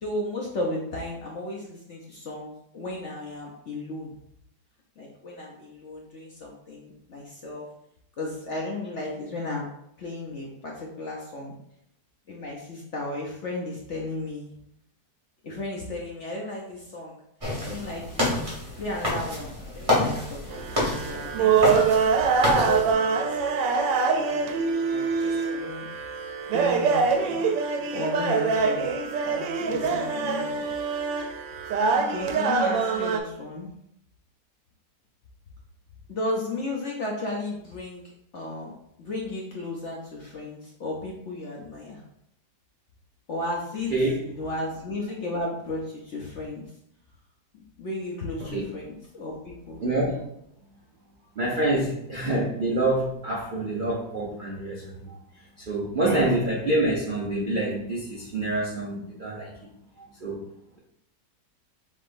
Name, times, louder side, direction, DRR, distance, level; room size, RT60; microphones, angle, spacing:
voice 1, 0.0-4.1 5.0-7.7 8.2-9.7 10.0-11.5 12.3-14.5 15.4-17.2 17.6-18.3 18.8-21.8 22.4-23.5 23.9-25.9 26.5-27.5 27.9-28.9 29.3-30.7 31.9-33.7 36.1-38.0 38.3-38.7 39.0-42.0 43.3-43.9 44.2-46.6 47.5-49.8, left 2 dB, 55° left, -2 dB, 0.8 m, -34 dB
sound 1, 17.4-22.9, left 1 dB, 20° right, 1.5 m, -28 dB
sound 2, 20.5-33.2, right 5 dB, 90° right, 1.3 m, -24 dB
voice 2, 49.8-50.2 51.4-55.1 55.6-59.5 60.0-60.4, right 2 dB, 60° right, -3 dB, 0.5 m, -26 dB
5.6 x 3.6 x 2.5 m, 0.76 s
omnidirectional pair, 1.9 m